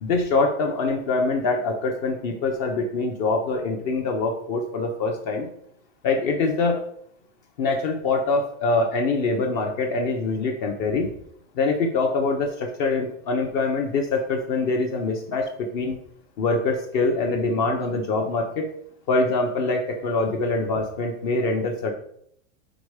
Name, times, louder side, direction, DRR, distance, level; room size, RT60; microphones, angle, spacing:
voice 1, 0.0-5.5 6.0-6.8 7.6-11.1 11.5-16.0 16.4-18.7 19.1-21.9, left 3 dB, 40° left, 2 dB, 0.9 m, -24 dB
5.1 x 4.5 x 4.9 m, 0.68 s
supercardioid pair, 165°, 38 cm